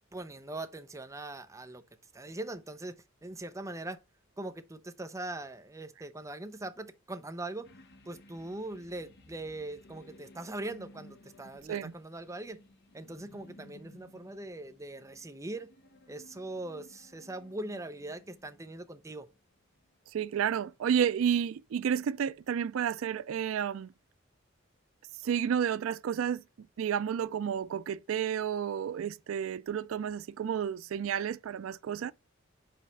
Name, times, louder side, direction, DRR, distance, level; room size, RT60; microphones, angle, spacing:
voice 1, 0.1-1.8 2.1-4.0 4.4-7.7 8.1-12.6 12.9-15.7 16.1-19.3, right 2 dB, 15° right, 0.6 m, -41 dB
sound 1, 7.6-19.4 19.8-19.9, left 1 dB, 60° left, 0.9 m, -57 dB
voice 2, 20.1-23.9 25.2-26.4 26.8-32.1, right 8 dB, 85° right, 0.3 m, -31 dB
5.1 x 4.2 x 5.6 m
head